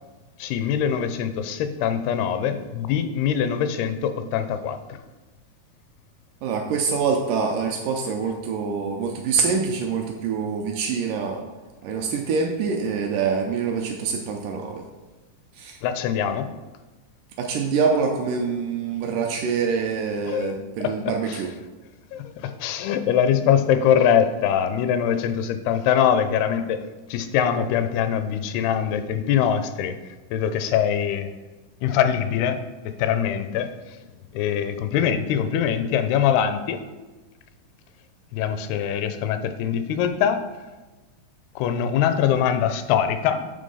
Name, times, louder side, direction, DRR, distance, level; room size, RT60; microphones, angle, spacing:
voice 1, 0.4-5.0 15.8-16.5 20.3-20.6 20.8-20.9 21.3-21.4 22.1-26.8 27.1-30.0 30.3-31.3 31.8-32.6 32.8-33.7 34.3-36.8 38.3-40.4 41.6-43.5, left 9 dB, 85° left, 10 dB, 2.5 m, -23 dB
voice 2, 6.4-11.4 11.8-14.8 15.5-15.8 17.4-21.5, right 5 dB, 80° right, 2 dB, 1.9 m, -25 dB
8.5 x 3.6 x 5.4 m, 1.2 s
omnidirectional pair, 4.4 m